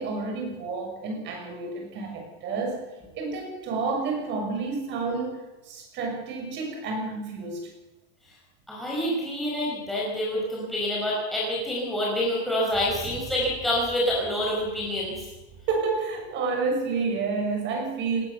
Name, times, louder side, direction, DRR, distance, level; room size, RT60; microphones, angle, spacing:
voice 1, 0.0-2.8 3.1-7.7 15.7-18.2, right 4 dB, 35° right, 3 dB, 6.7 m, -30 dB
voice 2, 8.7-15.3, left 1 dB, ahead, -6 dB, 5.3 m, -27 dB
19.5 x 19.0 x 6.9 m, 1.1 s
supercardioid pair, 170°, 32 cm